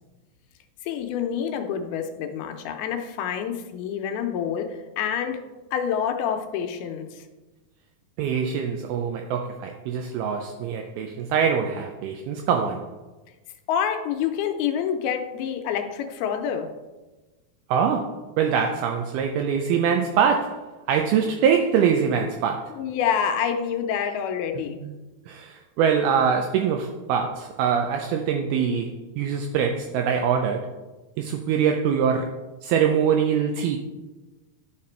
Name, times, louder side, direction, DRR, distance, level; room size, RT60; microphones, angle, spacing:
voice 1, 0.8-5.4 5.7-7.3 13.7-16.7 22.7-24.8, left 8 dB, 80° left, 6 dB, 2.5 m, -27 dB
voice 2, 8.2-12.9 17.7-22.7 24.8-24.9 25.3-30.7 31.2-32.3 32.6-33.8, right 7 dB, 80° right, 3 dB, 2.4 m, -24 dB
11.5 x 5.9 x 4.4 m, 1.2 s
omnidirectional pair, 4.6 m